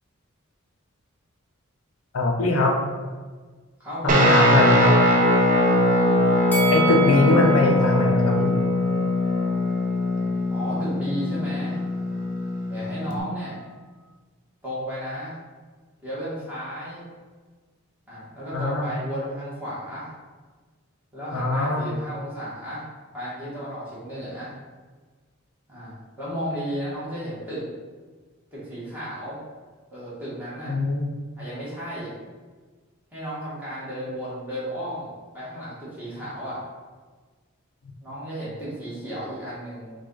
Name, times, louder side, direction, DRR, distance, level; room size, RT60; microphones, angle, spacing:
voice 1, 2.1-2.8 4.0-4.9 6.7-8.6 18.5-18.9 21.3-21.9 30.7-31.1, left 2 dB, 75° left, 2 dB, 0.5 m, -21 dB
voice 2, 3.8-4.9 10.5-11.8 12.7-13.6 14.6-15.4 16.0-17.0 18.1-20.1 21.1-22.9 23.1-24.5 25.7-27.6 28.5-29.4 29.9-30.7 31.4-32.2 33.1-36.6 38.0-39.9, equal, 10° right, -10 dB, 1.5 m, -34 dB
Guitar, 4.1-13.2, left 1 dB, 40° right, 0.5 m, -21 dB
Bell, 6.5-9.7 10.1-10.2, right 4 dB, 10° left, 0.3 m, -32 dB
4.7 x 2.3 x 3.9 m, 1.4 s
head